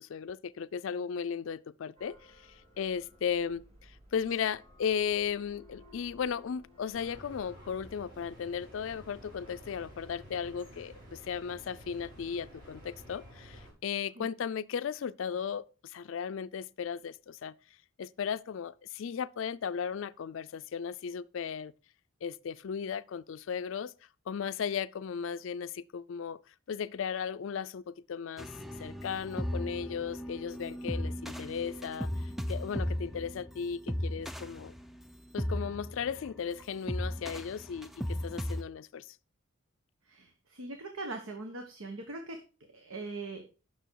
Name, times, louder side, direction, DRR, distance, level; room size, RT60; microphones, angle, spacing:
voice 1, 0.0-2.2 2.8-17.5 18.0-21.7 22.2-23.9 24.3-26.4 26.7-28.5 28.8-34.7 35.3-39.2, left 7 dB, 70° left, 0.4 m, -36 dB
sound 1, 2.0-7.7, left 1 dB, 30° right, 3.2 m, -58 dB
sound 2, 6.9-13.7, equal, 50° right, 5.5 m, -51 dB
sound 3, 28.4-38.6, equal, ahead, 0.3 m, -37 dB
voice 2, 40.1-42.4 42.7-43.4, right 2 dB, 85° right, 1.2 m, -41 dB
9.1 x 6.2 x 4.6 m
head